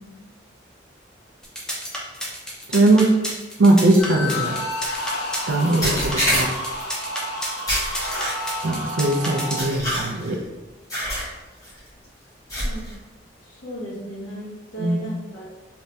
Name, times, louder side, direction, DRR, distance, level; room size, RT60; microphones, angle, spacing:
sound 1, 1.4-9.8, equal, 5° left, 0.7 m, -31 dB
voice 1, 2.7-3.1 3.6-4.6 5.5-6.5 8.6-10.4 14.8-15.0, right 2 dB, 75° right, 1 dB, 0.5 m, -19 dB
sound 2, 4.0-9.6, left 1 dB, 60° left, 0.7 m, -30 dB
Sonic Melon Stabbing Sample Remix, 4.8-5.1 5.8-6.8 7.7-8.6 9.6-10.4 10.9-11.3 11.6-11.9 12.5-12.9, equal, 20° left, 1.4 m, -26 dB
voice 2, 13.4-15.4, right 2 dB, 85° left, -6 dB, 1.3 m, -35 dB
3.3 x 3.3 x 2.7 m, 1.1 s
head